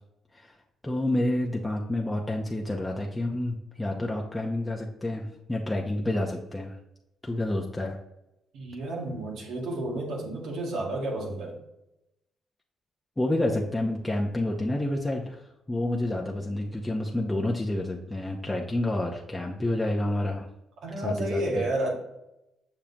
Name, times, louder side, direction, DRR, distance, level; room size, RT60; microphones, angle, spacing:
voice 1, 0.8-6.8 7.2-8.0 13.2-15.4 15.7-20.5 21.0-21.6, left 1 dB, 10° left, 0 dB, 0.8 m, -29 dB
voice 2, 8.5-11.6 20.8-22.0, right 1 dB, 75° right, -1 dB, 2.0 m, -31 dB
7.0 x 5.8 x 2.9 m, 0.88 s
cardioid pair, 90°, 0 cm